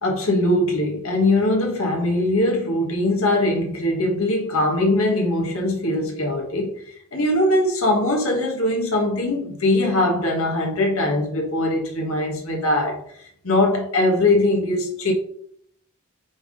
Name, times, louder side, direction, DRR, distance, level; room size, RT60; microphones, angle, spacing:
voice 1, 0.0-6.7 7.1-13.0 13.4-15.1, left 1 dB, 75° left, 1.5 m, -21 dB
6.0 x 3.6 x 5.2 m
head